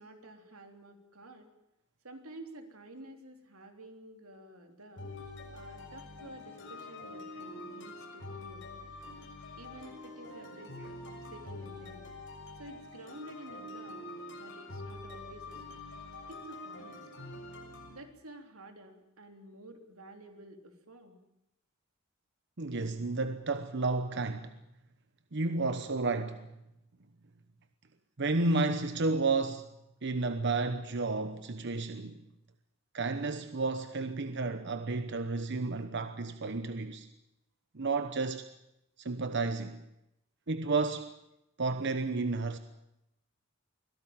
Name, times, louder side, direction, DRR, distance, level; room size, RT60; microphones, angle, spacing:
voice 1, 0.0-1.5 2.0-5.1 5.5-8.7 9.6-12.1 12.6-14.1 14.3-15.9 16.3-17.1 17.9-21.2, right 1 dB, 90° right, 3.5 m, -51 dB
sound 1, 5.0-17.9, left 2 dB, 60° left, 6.8 m, -45 dB
voice 2, 22.6-24.5 25.3-26.5 28.2-29.7 30.0-32.2 32.9-37.1 37.7-38.5 39.0-39.8 40.5-41.1 41.6-42.6, right 3 dB, 55° right, 1.0 m, -31 dB
24.0 x 17.0 x 8.8 m
head